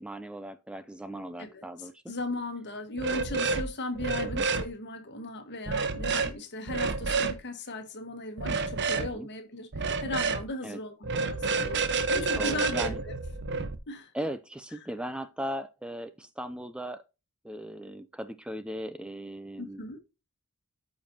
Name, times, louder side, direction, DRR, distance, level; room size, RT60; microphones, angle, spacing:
voice 1, 0.0-2.1 4.2-4.5 9.0-9.3 10.6-10.8 12.4-13.0 14.1-17.0 17.4-20.0, right 1 dB, 5° right, 0.4 m, -38 dB
voice 2, 1.4-13.1 13.9-14.1 14.8-14.9 19.6-20.0, left 2 dB, 50° left, 1.5 m, -37 dB
sound 1, 3.0-3.7 4.0-4.7 5.7-6.3 6.7-7.4 8.4-9.1 9.7-10.4 11.0-13.7, right 4 dB, 55° right, 1.0 m, -29 dB
14.0 x 5.2 x 2.7 m
head